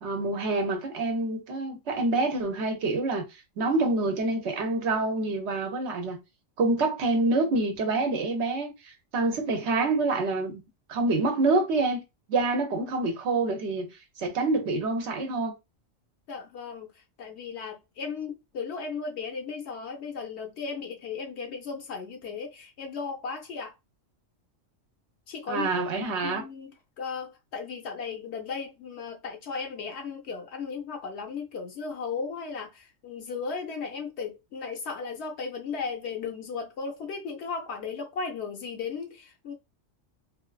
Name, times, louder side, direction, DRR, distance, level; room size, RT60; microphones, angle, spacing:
voice 1, 0.0-3.2 3.6-6.2 6.6-10.6 10.9-12.0 12.3-13.9 14.2-15.5 25.5-26.4, right 3 dB, 65° right, 0.9 m, -27 dB
voice 2, 16.3-23.8 25.3-25.8 26.2-39.5, left 5 dB, 65° left, 0.8 m, -36 dB
3.0 x 2.4 x 2.3 m
omnidirectional pair, 1.3 m